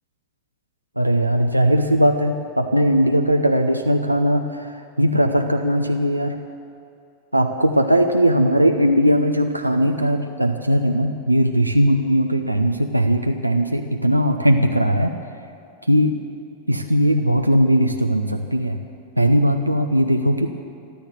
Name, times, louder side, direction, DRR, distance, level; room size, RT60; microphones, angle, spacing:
voice 1, 1.0-6.3 7.3-15.1 15.9-16.1 16.7-18.8 19.2-20.5, equal, 90° right, 4 dB, 0.7 m, -19 dB
13.5 x 13.5 x 7.5 m, 2.6 s
figure-of-eight pair, 90°, 0 cm